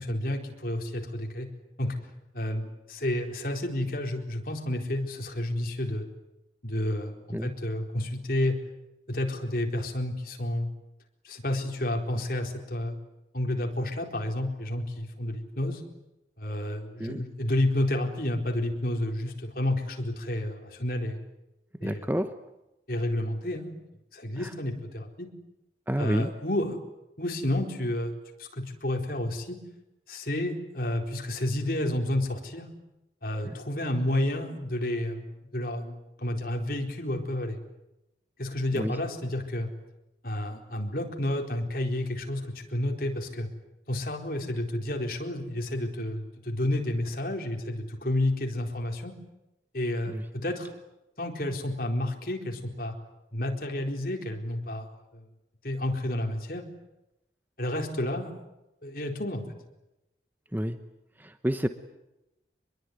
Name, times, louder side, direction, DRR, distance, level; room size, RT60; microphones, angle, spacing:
voice 1, 0.0-1.5 1.8-2.0 2.3-6.0 6.6-8.6 9.1-10.7 11.2-13.0 13.3-15.8 16.4-21.2 21.8-22.1 22.9-23.8 24.1-25.3 26.0-26.8 27.2-29.6 30.1-32.7 33.2-35.9 36.2-37.6 38.4-39.7 40.2-43.5 43.9-49.1 49.7-50.7 51.2-52.9 53.3-54.9 55.1-55.2 55.6-56.6 57.6-58.3 58.8-59.4, left 1 dB, 50° left, 3 dB, 4.3 m, -30 dB
voice 2, 21.8-22.4 24.4-24.5 25.9-26.3 33.4-33.6 38.8-38.9 50.1-50.2 60.5-60.8 61.2-61.7, equal, 10° right, 9 dB, 1.0 m, -29 dB
25.5 x 22.0 x 9.5 m, 0.94 s
head